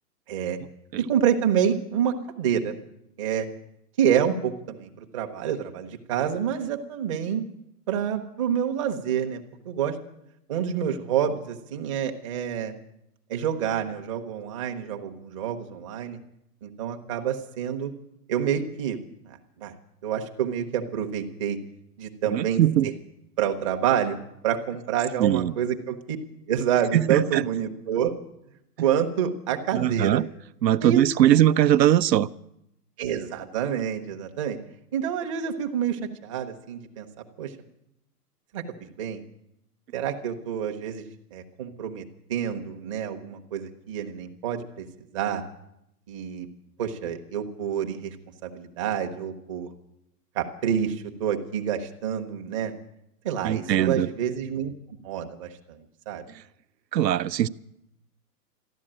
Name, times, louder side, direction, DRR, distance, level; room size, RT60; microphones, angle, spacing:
voice 1, 1.0-2.7 3.2-3.5 4.0-7.4 7.9-9.4 9.7-10.0 10.5-12.7 13.3-16.2 16.6-17.9 18.3-19.0 19.3-19.7 20.0-21.6 22.0-22.9 23.4-24.2 24.4-26.2 26.5-28.1 28.8-30.2 30.8-31.4 33.0-34.6 34.9-37.1 37.4-37.5 38.5-38.6 39.0-39.2 39.9-41.0 41.3-42.0 42.3-44.8 45.1-45.4 46.1-46.5 46.8-48.2 48.4-49.7 50.3-52.7 53.2-54.7 55.0-55.8 56.1-56.2, right 8 dB, 20° right, 0.8 m, -28 dB
voice 2, 22.3-22.9 25.2-25.5 26.9-27.4 29.7-30.3 30.6-32.3 53.4-54.1 56.9-57.5, right 12 dB, 85° right, 0.7 m, -21 dB
13.5 x 11.0 x 8.7 m
hypercardioid pair, 165°, 49 cm